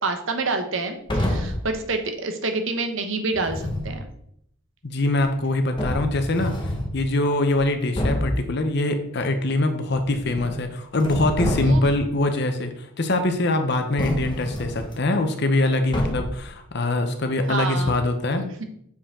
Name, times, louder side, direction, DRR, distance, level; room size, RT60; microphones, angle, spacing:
voice 1, 0.0-4.0 11.6-11.8 17.5-17.9 18.4-18.6, right 3 dB, 65° right, 6 dB, 1.0 m, -27 dB
sound 1, 1.1-1.7 3.3-4.0 5.2-5.3 5.8-7.0 7.5-7.6 8.0-8.4 10.0-10.7 11.0-12.1 14.0-14.9 15.9-16.5, left 1 dB, 20° left, 1.0 m, -27 dB
voice 2, 4.8-6.6 6.9-18.5, left 2 dB, 50° left, 7 dB, 0.8 m, -23 dB
7.0 x 4.9 x 3.7 m, 0.72 s
head